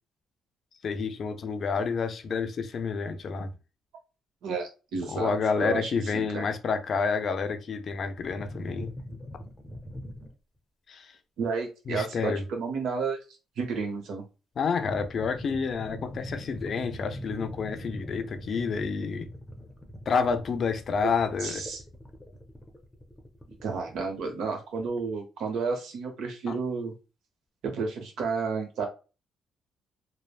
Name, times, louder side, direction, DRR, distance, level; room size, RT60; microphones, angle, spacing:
voice 1, 0.8-3.5 5.1-8.9 10.9-11.1 11.9-12.5 14.6-19.3 20.1-21.6 26.5-26.6, left 5 dB, 55° left, 0.4 m, -29 dB
voice 2, 4.4-5.3 5.6-6.4 11.4-13.2 13.6-14.2 21.4-21.8 23.6-26.9 27.6-28.9, right 4 dB, 80° right, 0.9 m, -31 dB
sound 1, 8.1-10.3 14.7-24.3 24.8-25.1, left 1 dB, 10° left, 0.7 m, -42 dB
3.2 x 2.1 x 2.3 m
cardioid pair, 90°, 0 cm